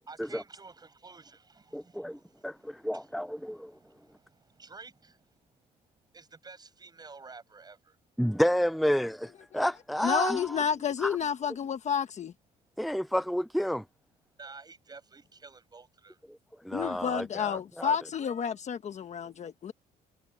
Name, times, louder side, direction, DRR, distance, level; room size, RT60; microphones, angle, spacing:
voice 1, 0.1-2.2 2.9-3.2 3.8-4.2 4.6-5.2 6.1-7.9 14.4-16.2, right 4 dB, 25° right, 7.6 m, -50 dB
voice 2, 1.7-3.7 8.2-10.6 11.0-11.2 12.8-13.8 16.6-17.9, equal, ahead, 0.4 m, -30 dB
voice 3, 10.0-12.3 16.7-19.7, left 7 dB, 45° left, 1.3 m, -30 dB
cardioid pair, 110°, 17 cm